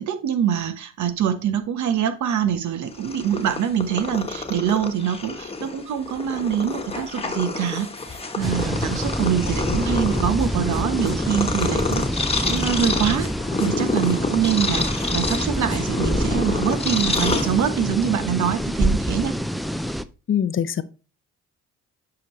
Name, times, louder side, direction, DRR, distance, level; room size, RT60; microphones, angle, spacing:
voice 1, 0.0-13.3 13.6-19.4, right 9 dB, 70° right, 10 dB, 1.1 m, -24 dB
Purr, 2.8-18.0, left 3 dB, 20° left, 1.2 m, -28 dB
sound 1, 8.4-20.0, equal, ahead, 0.4 m, -26 dB
voice 2, 20.3-20.8, left 9 dB, 45° left, 15 dB, 0.6 m, -22 dB
8.4 x 5.1 x 3.1 m, 0.34 s
cardioid pair, 90°, 30 cm